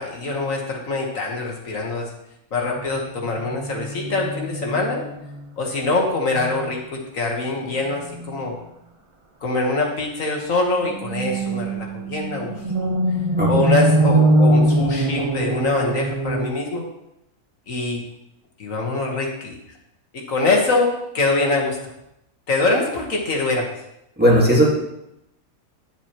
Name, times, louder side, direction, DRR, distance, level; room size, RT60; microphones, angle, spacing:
voice 1, 0.0-2.1 2.5-5.0 5.6-8.6 9.4-12.6 13.5-16.8 17.7-18.0 18.6-19.5 20.1-21.8 22.5-23.7, left 2 dB, 60° left, 0 dB, 1.6 m, -24 dB
sound 1, 2.7-5.5 5.8-6.0 6.3-6.7 8.0-8.4 10.8-16.5, right 1 dB, 40° right, 0.5 m, -22 dB
voice 2, 24.2-24.6, equal, 5° right, -4 dB, 1.4 m, -15 dB
9.8 x 7.5 x 2.9 m, 0.83 s
omnidirectional pair, 1.6 m